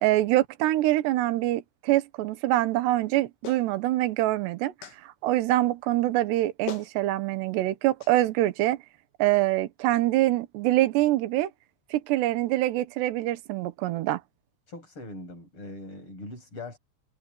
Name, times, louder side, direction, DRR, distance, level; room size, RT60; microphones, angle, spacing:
voice 1, 0.0-4.7 5.0-8.8 9.2-11.5 11.9-14.2, right 16 dB, 75° right, 3.3 m, -25 dB
Clapping, 3.4-3.7 4.8-5.0 6.3-6.4 6.7-6.9 8.0-8.1, left 8 dB, 80° left, 4.7 m, -38 dB
voice 2, 14.7-16.8, left 2 dB, 25° left, 8.5 m, -41 dB
omnidirectional pair, 5.2 m